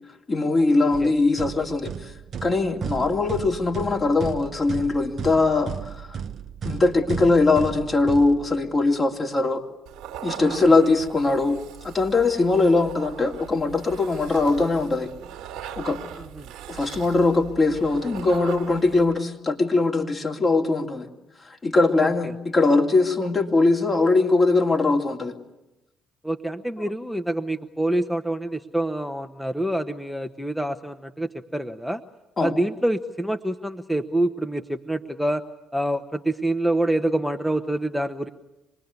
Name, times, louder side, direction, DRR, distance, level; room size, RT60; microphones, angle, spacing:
voice 1, 0.3-2.1 2.4-6.1 6.6-9.6 10.2-11.6 11.8-15.1 15.8-16.0 16.7-21.1 21.4-25.3 32.4-32.5, left 3 dB, 35° left, 2 dB, 3.0 m, -21 dB
voice 2, 0.8-1.1 10.4-10.7 16.4-16.5 22.0-22.3 26.2-32.0 32.4-35.4 35.7-38.3, right 1 dB, ahead, 7 dB, 1.1 m, -26 dB
sound 1, 0.9-8.9, right 7 dB, 55° right, 1.0 m, -35 dB
sound 2, 9.9-19.2, right 10 dB, 70° right, 1.7 m, -40 dB
26.5 x 20.5 x 9.6 m, 0.97 s
hypercardioid pair, 50°, 0 cm